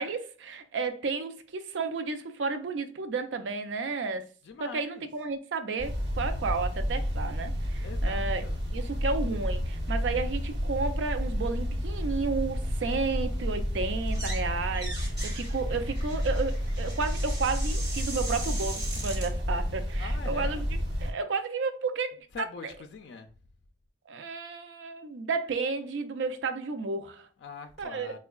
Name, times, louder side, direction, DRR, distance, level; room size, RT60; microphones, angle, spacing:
voice 1, 0.0-4.3 4.7-8.4 8.7-22.3 24.1-27.3 27.8-28.2, right 4 dB, 90° right, 0.4 m, -32 dB
voice 2, 4.4-5.1 7.8-8.6 20.0-20.7 22.3-23.3 27.4-28.2, left 5 dB, 70° left, 0.3 m, -43 dB
sound 1, 5.8-21.1, equal, 70° right, 1.0 m, -31 dB
sound 2, 14.0-14.5 14.7-19.3, right 2 dB, 20° right, 1.2 m, -40 dB
4.3 x 2.2 x 2.3 m
head